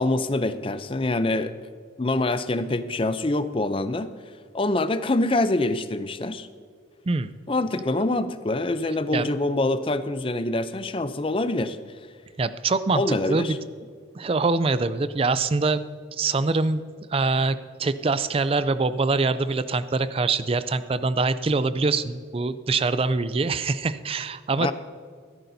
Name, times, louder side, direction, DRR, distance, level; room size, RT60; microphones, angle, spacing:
voice 1, 0.0-1.5 2.0-4.1 4.5-6.5 7.5-11.8 12.9-13.6 24.6-24.7, left 2 dB, 25° left, 12 dB, 0.5 m, -25 dB
voice 2, 12.4-13.6 14.2-15.8 16.1-16.8 17.1-24.7, right 3 dB, 30° right, 14 dB, 0.4 m, -24 dB
15.0 x 13.5 x 2.7 m, 2.1 s
head